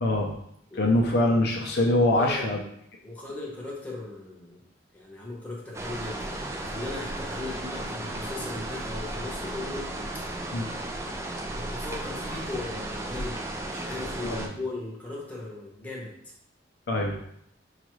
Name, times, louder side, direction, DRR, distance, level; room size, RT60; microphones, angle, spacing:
voice 1, 0.0-0.3 0.7-2.6 10.5-10.7 14.2-14.5 16.9-17.2, left 1 dB, 60° left, 1 dB, 0.5 m, -24 dB
voice 2, 0.7-1.1 2.1-2.5 3.0-4.7 4.9-9.9 11.5-16.1, left 2 dB, 10° left, -4 dB, 0.9 m, -38 dB
sound 1, 5.7-14.5, right 1 dB, 15° right, 0.4 m, -34 dB
4.9 x 2.4 x 3.0 m, 0.73 s
head